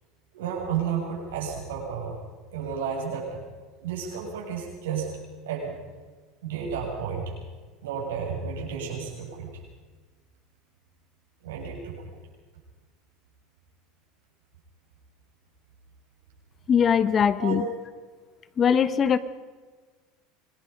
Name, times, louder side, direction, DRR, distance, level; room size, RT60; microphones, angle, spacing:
voice 1, 0.3-2.1 2.5-3.4 3.8-5.1 5.4-5.8 6.4-7.3 7.8-9.5 11.4-12.1 17.4-17.6, right 7 dB, 85° right, -1 dB, 7.5 m, -32 dB
voice 2, 16.7-17.7 18.6-19.2, left 7 dB, 35° left, 15 dB, 1.2 m, -21 dB
26.0 x 19.0 x 5.4 m, 1.4 s
hypercardioid pair, 90°, 0 cm